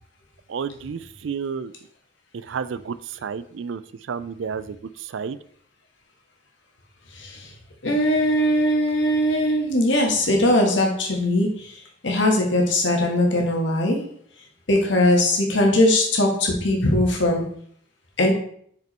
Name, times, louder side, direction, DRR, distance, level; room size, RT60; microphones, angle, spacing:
voice 1, 0.5-1.7 2.3-3.8 4.1-5.4, right 6 dB, 75° right, 15 dB, 0.4 m, -31 dB
voice 2, 7.1-7.5 7.8-11.7 12.0-14.0 14.7-17.4 18.2-18.3, left 1 dB, 70° left, 1 dB, 1.8 m, -20 dB
6.3 x 5.1 x 4.3 m, 0.64 s
head